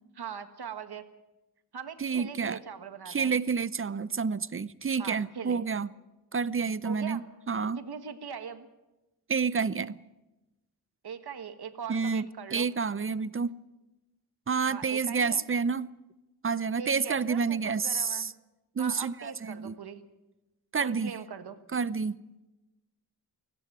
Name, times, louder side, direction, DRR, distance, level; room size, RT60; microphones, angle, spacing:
voice 1, 0.2-1.0 1.7-3.4 5.0-5.6 6.8-7.2 7.8-8.7 11.0-12.7 14.7-15.4 16.8-18.3 18.8-20.0 20.8-21.6, right 7 dB, 75° right, 1.6 m, -41 dB
voice 2, 2.0-2.6 3.1-5.9 6.3-7.8 9.3-10.0 11.9-13.5 14.5-15.9 16.4-18.3 18.8-19.8 20.7-21.1 21.7-22.2, right 5 dB, 35° right, 0.7 m, -29 dB
18.0 x 16.0 x 9.2 m
wide cardioid pair, 90°, 39 cm